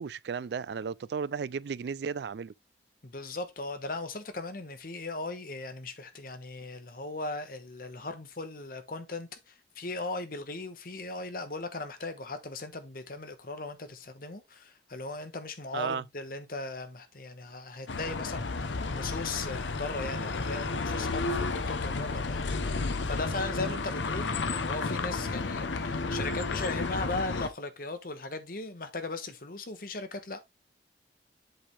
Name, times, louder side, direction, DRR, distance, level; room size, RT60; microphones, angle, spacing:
voice 1, 0.0-2.5 15.7-16.0 23.6-23.8, right 6 dB, 65° right, 0.3 m, -34 dB
voice 2, 3.0-30.4, left 3 dB, 50° left, 1.2 m, -38 dB
sound 1, 17.9-27.5, left 3 dB, 90° left, 0.8 m, -32 dB
7.8 x 5.0 x 3.3 m
head